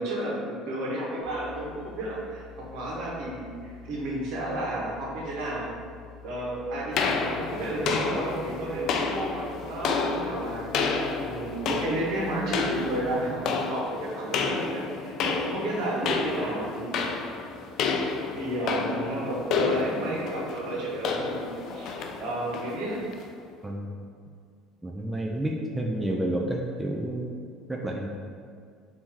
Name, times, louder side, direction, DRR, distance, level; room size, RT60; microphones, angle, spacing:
voice 1, 0.0-5.7 6.2-10.7 11.2-17.2 18.3-23.0, right 1 dB, 70° right, -4 dB, 1.2 m, -32 dB
sound 1, 1.2-13.1, left 8 dB, 5° left, 1.2 m, -48 dB
sound 2, 7.0-23.3, left 4 dB, 60° left, 0.4 m, -30 dB
voice 2, 24.8-27.3 27.7-28.1, right 1 dB, 10° right, -1 dB, 0.5 m, -30 dB
3.6 x 2.8 x 4.5 m, 2.1 s
supercardioid pair, 80°, 0 cm